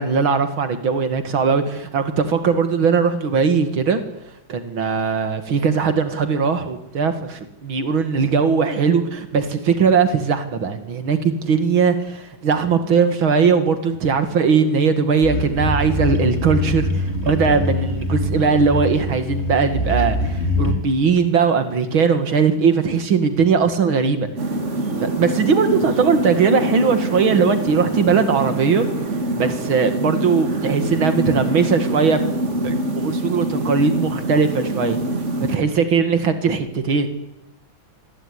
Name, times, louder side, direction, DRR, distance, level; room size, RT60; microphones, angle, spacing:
voice 1, 0.0-4.0 4.5-16.9 17.2-24.3 25.0-28.9 29.4-32.2 32.6-35.0 35.5-37.1, right 5 dB, 85° right, 9 dB, 3.0 m, -19 dB
sound 1, 15.2-20.7, left 1 dB, 30° left, 4.7 m, -23 dB
sound 2, 24.4-35.6, right 2 dB, 35° right, 2.5 m, -24 dB
26.0 x 20.5 x 9.8 m, 0.87 s
omnidirectional pair, 2.2 m